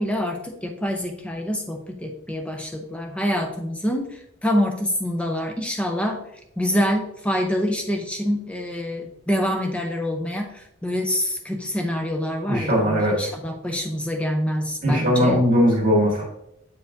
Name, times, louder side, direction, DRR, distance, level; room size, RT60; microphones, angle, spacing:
voice 1, 0.0-4.1 4.4-6.2 6.6-15.4, equal, 5° left, 3 dB, 0.6 m, -26 dB
voice 2, 12.5-13.1 14.8-16.2, equal, 40° right, -4 dB, 1.7 m, -19 dB
8.2 x 4.6 x 2.6 m, 0.76 s
head